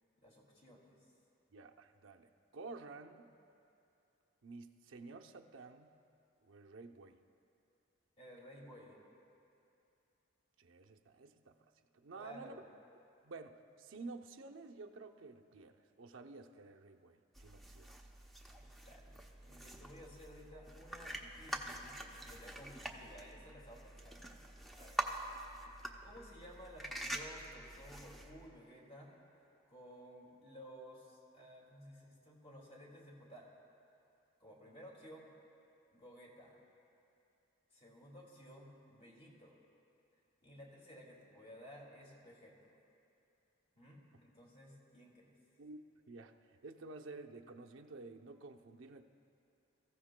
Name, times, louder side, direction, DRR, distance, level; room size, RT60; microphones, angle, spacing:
voice 1, 0.2-1.0 8.2-9.0 12.2-12.7 18.8-24.5 24.8-25.1 26.0-29.1 29.7-33.5 34.4-35.3 35.9-36.6 37.7-39.6 40.4-42.8 43.8-45.3, equal, 35° left, -3 dB, 2.2 m, -55 dB
voice 2, 1.5-3.3 4.4-5.9 6.4-7.2 10.6-11.6 11.9-12.6 13.2-17.9 45.6-45.8 46.1-49.0, right 3 dB, 85° right, 3 dB, 0.7 m, -51 dB
bag noise with zip, 17.3-28.5, right 1 dB, ahead, 0.6 m, -46 dB
24.5 x 14.5 x 2.2 m, 2.7 s
head